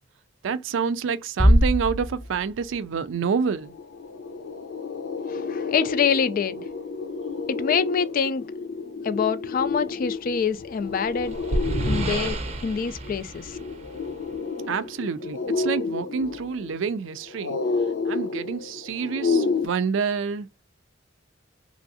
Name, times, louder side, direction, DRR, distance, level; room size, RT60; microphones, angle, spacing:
voice 1, 0.4-3.7 14.7-17.6 18.1-20.5, right 6 dB, 90° right, 0.4 m, -28 dB
Bass drum, 1.4-2.8, equal, ahead, 0.6 m, -20 dB
sound 1, 3.1-3.2 3.5-19.7, left 4 dB, 85° left, 0.8 m, -30 dB
voice 2, 5.3-6.6 7.5-8.4 9.0-11.4 11.9-13.6, left 6 dB, 45° left, 0.3 m, -25 dB
sound 2, 10.7-14.3, right 1 dB, 35° right, 0.6 m, -30 dB
3.1 x 2.6 x 2.6 m
head